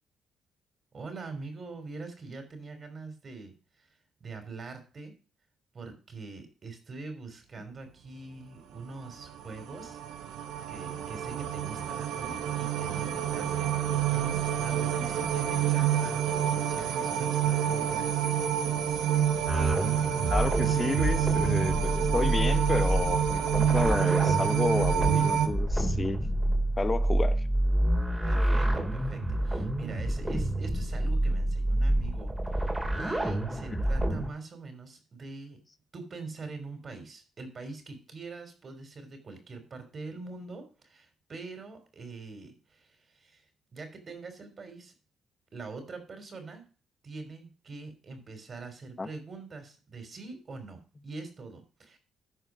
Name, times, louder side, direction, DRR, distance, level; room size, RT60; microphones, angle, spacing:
voice 1, 0.9-3.9 4.2-5.1 5.7-10.0 10.7-18.2 28.2-35.6 35.9-43.4 43.7-44.9 45.5-46.6 47.0-52.0, right 3 dB, 40° right, 3.4 m, -43 dB
sound 1, 9.2-25.5, right 9 dB, 85° right, 1.0 m, -28 dB
sound 2, 19.5-34.3, right 1 dB, 15° right, 2.2 m, -28 dB
voice 2, 20.3-26.2 26.8-27.4 33.7-33.8 49.0-49.1, left 3 dB, 25° left, 1.0 m, -31 dB
13.0 x 4.8 x 5.0 m
cardioid pair, 90°, 0 cm